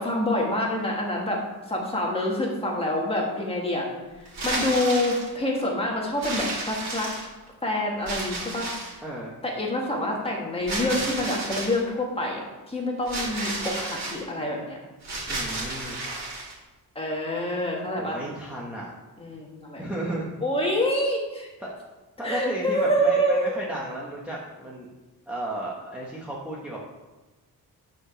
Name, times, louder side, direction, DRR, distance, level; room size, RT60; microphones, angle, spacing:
voice 1, 0.0-1.4 1.7-3.9 4.4-7.1 7.6-8.7 9.4-12.4 12.7-14.8 17.0-18.2 19.2-19.8 20.4-21.5 22.2-23.5, left 1 dB, 15° left, -2 dB, 1.8 m, -26 dB
sound 1, 4.3-5.3 6.2-7.5 8.1-9.0 10.7-11.8 13.1-14.2 15.0-16.5, right 2 dB, 45° right, 3.0 m, -32 dB
voice 2, 9.0-9.4 15.3-16.0 18.0-18.9 19.8-20.3 21.6-21.8 22.2-24.9 25.3-26.8, right 1 dB, 5° right, -5 dB, 1.1 m, -34 dB
9.5 x 5.0 x 6.1 m, 1.1 s
wide cardioid pair, 180°, 38 cm